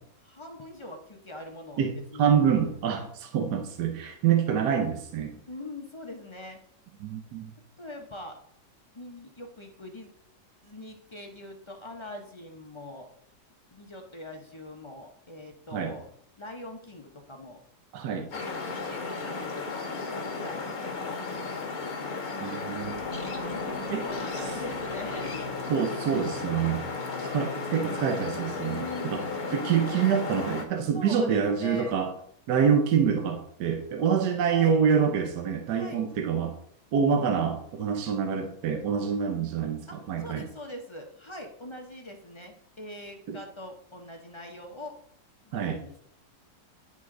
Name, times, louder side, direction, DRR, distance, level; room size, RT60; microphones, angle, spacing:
voice 1, 0.2-2.4 5.5-6.6 7.8-8.4 8.9-10.1 10.6-13.1 13.7-16.1 16.4-17.6 18.3-21.8 23.6-23.7 24.0-25.7 27.0-27.3 28.7-29.4 30.9-32.0 34.5-34.8 35.7-36.1 39.9-44.9 45.4-46.0, left 1 dB, 40° left, 2 dB, 0.4 m, -43 dB
voice 2, 2.2-5.3 7.0-7.5 15.7-15.9 17.9-18.3 22.4-23.0 23.9-24.0 24.3-24.4 25.7-26.9 27.2-29.2 29.5-32.1 32.5-36.5 36.9-40.5 43.3-43.4 45.5-45.8, right 7 dB, 75° right, 5 dB, 1.3 m, -26 dB
sound 1, 18.3-30.6, left 4 dB, 60° left, 1.7 m, -34 dB
sound 2, 22.7-29.8, left 2 dB, 25° right, 1.2 m, -44 dB
10.0 x 4.3 x 3.7 m, 0.67 s
omnidirectional pair, 1.8 m